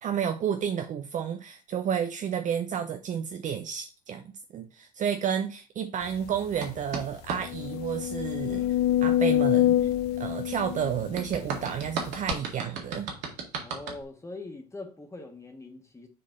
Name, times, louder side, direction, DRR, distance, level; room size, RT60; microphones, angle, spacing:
voice 1, 0.0-9.8 10.2-13.1, right 8 dB, 35° right, 0.7 m, -31 dB
sound 1, 6.3-6.4 6.8-6.9 7.4-11.6 12.3-12.4, left 12 dB, 50° left, 0.5 m, -26 dB
sound 2, 6.6-7.4 11.1-14.0, right 5 dB, 55° right, 1.9 m, -34 dB
voice 2, 13.6-16.1, left 2 dB, 15° left, 1.7 m, -42 dB
6.7 x 3.8 x 3.9 m
figure-of-eight pair, 65°, 21 cm